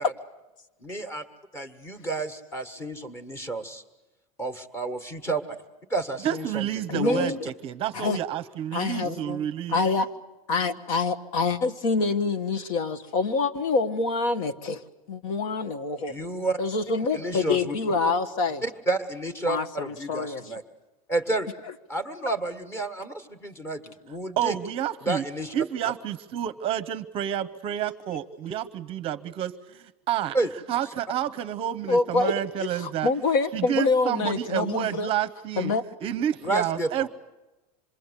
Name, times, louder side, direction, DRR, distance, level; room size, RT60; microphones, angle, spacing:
voice 1, 0.8-1.2 1.5-3.8 4.4-5.4 5.9-7.5 9.0-9.4 16.1-16.6 17.0-17.8 18.6-20.6 21.1-21.5 21.9-24.6 25.0-25.5 30.3-30.5 36.4-37.1, right 2 dB, 15° left, 11 dB, 1.6 m, -30 dB
voice 2, 6.2-9.8 24.4-25.2 25.5-30.4 30.7-33.1 33.5-35.7 36.0-37.1, right 10 dB, 30° right, 13 dB, 0.8 m, -29 dB
voice 3, 6.9-7.4 7.9-8.2 8.7-9.1 9.7-10.1 10.5-14.8 15.1-16.2 16.6-18.6 19.5-20.4 31.9-35.1 35.6-35.8, left 4 dB, 65° left, 10 dB, 1.6 m, -26 dB
26.5 x 22.0 x 8.3 m, 1.1 s
supercardioid pair, 165°, 18 cm